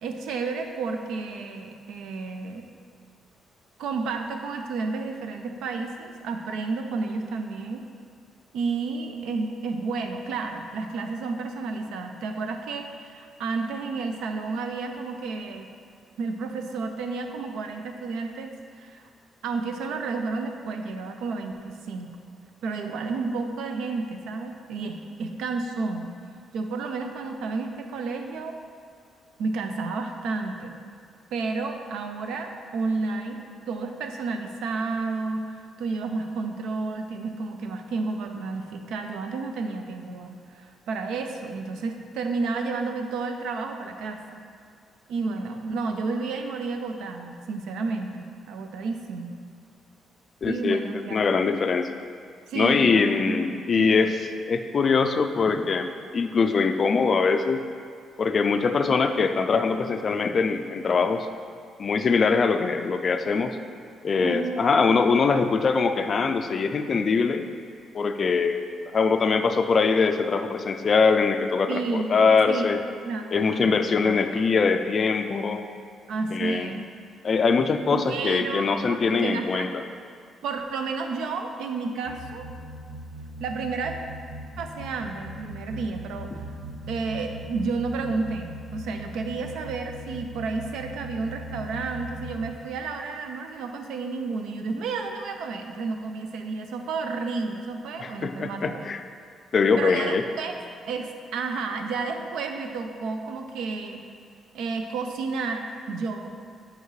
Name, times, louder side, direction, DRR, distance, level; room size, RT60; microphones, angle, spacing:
voice 1, 0.0-2.7 3.8-7.8 8.5-15.7 16.2-19.0 19.4-22.2 22.6-26.1 26.5-28.5 29.4-30.8 31.3-44.4 45.1-49.4 50.4-51.4 52.5-54.2 64.2-64.6 71.7-72.7 73.1-73.7 74.0-74.2 76.1-76.8 77.9-79.7 80.4-82.5 83.4-84.0 84.6-86.3 86.9-98.8 99.8-100.6 100.9-104.0 104.5-106.3, right 4 dB, 85° right, 5 dB, 0.6 m, -31 dB
voice 2, 50.4-51.9 52.5-54.1 54.5-57.6 58.2-61.3 61.8-63.6 64.0-67.4 67.9-68.6 68.9-72.8 73.3-75.6 76.3-76.7 77.2-79.7 98.0-99.0 99.5-100.2, left 5 dB, 35° left, 7 dB, 0.3 m, -22 dB
sound 1, 82.1-92.5, right 1 dB, 50° right, 0.8 m, -39 dB
8.0 x 5.0 x 3.2 m, 2.3 s
cardioid pair, 150°, 0 cm